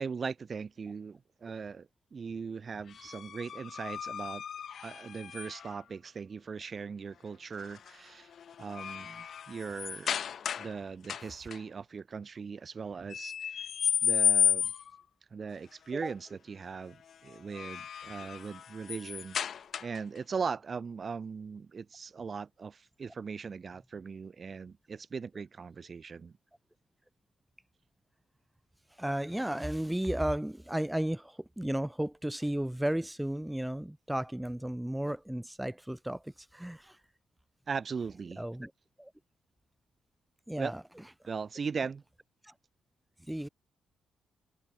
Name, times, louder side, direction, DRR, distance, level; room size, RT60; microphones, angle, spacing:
voice 1, 0.0-4.4 4.8-8.3 8.6-10.1 10.6-13.6 14.0-14.7 15.3-19.4 19.8-26.3 37.7-38.5 40.6-40.7 41.3-42.0, right 5 dB, 40° right, 2.1 m, -39 dB
sound 1, 2.9-5.8 7.6-7.9 8.3-10.8 11.0-11.6 13.1-15.0 17.3-20.2, left 8 dB, 55° left, 0.3 m, -33 dB
voice 2, 28.9-37.0 38.4-38.7 39.0-39.1 40.5-40.8 42.4-42.5 43.3-43.5, right 1 dB, 5° right, 1.8 m, -34 dB
cardioid pair, 90°, 0 cm